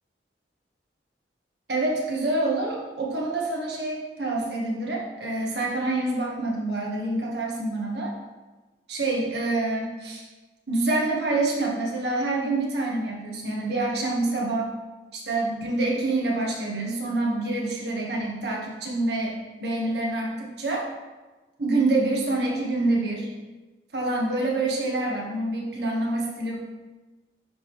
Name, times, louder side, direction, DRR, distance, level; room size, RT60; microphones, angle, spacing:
voice 1, 1.7-8.2 8.9-10.2 10.7-14.7 15.1-20.9 21.6-23.3 23.9-26.6, right 2 dB, 65° right, -2 dB, 1.3 m, -26 dB
9.9 x 3.5 x 3.1 m, 1.2 s
head